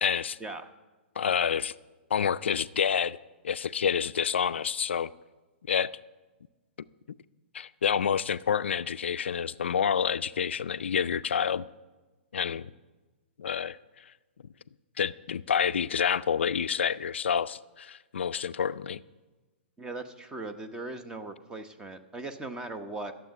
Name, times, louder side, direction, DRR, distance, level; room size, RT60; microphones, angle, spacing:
voice 1, 0.0-0.4 1.2-1.7 2.1-3.2 3.4-5.1 5.7-5.9 7.5-11.6 12.3-12.7 13.4-13.8 15.0-19.0, left 7 dB, 85° left, 15 dB, 0.4 m, -28 dB
voice 2, 19.8-23.1, right 2 dB, 10° right, 9 dB, 0.9 m, -39 dB
13.0 x 7.5 x 9.4 m, 1.2 s
hypercardioid pair, 130°, 6 cm